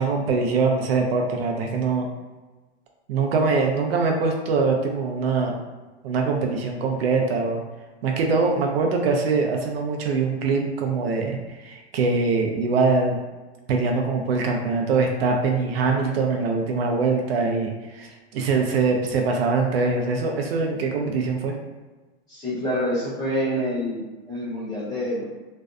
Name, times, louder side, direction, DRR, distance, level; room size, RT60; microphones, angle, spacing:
voice 1, 0.0-2.1 3.1-5.5 6.0-7.6 8.0-13.2 13.7-21.5, right 4 dB, 65° right, 2 dB, 0.5 m, -23 dB
voice 2, 22.3-25.2, equal, 10° left, -11 dB, 0.7 m, -27 dB
2.6 x 2.0 x 2.3 m, 1.2 s
supercardioid pair, 160°, 34 cm